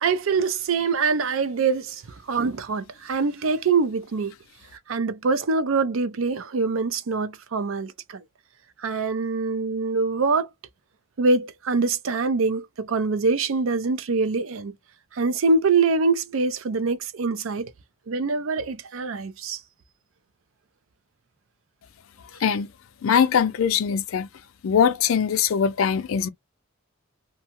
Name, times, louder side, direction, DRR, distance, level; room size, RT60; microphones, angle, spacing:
voice 1, 0.0-2.0 2.3-4.3 4.9-8.2 8.8-10.5 11.2-14.7 15.2-17.7 18.1-19.6, right 4 dB, 80° right, 0.5 m, -24 dB
voice 2, 23.0-24.3 24.6-26.3, left 7 dB, 85° left, 0.4 m, -21 dB
2.7 x 2.2 x 2.8 m
head